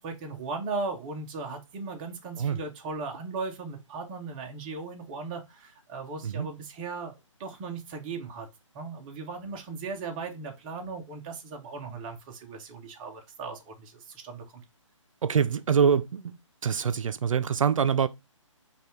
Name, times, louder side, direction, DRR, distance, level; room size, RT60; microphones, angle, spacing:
voice 1, 0.0-8.5 8.7-14.6, right 4 dB, 15° right, 0.5 m, -37 dB
voice 2, 15.2-16.4 16.6-18.1, right 7 dB, 80° right, 0.4 m, -25 dB
5.2 x 2.3 x 3.0 m
hypercardioid pair, 155°, 17 cm